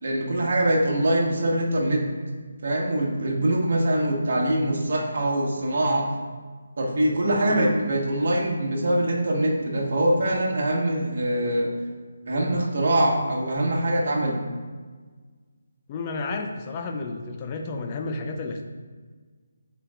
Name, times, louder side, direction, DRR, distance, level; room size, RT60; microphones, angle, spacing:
voice 1, 0.0-2.0 2.6-6.1 6.8-11.7 12.3-14.4, right 1 dB, 60° right, -2 dB, 1.3 m, -23 dB
voice 2, 15.9-18.7, left 3 dB, 25° left, 3 dB, 0.5 m, -31 dB
8.5 x 4.6 x 2.5 m, 1.5 s
figure-of-eight pair, 155°, 0 cm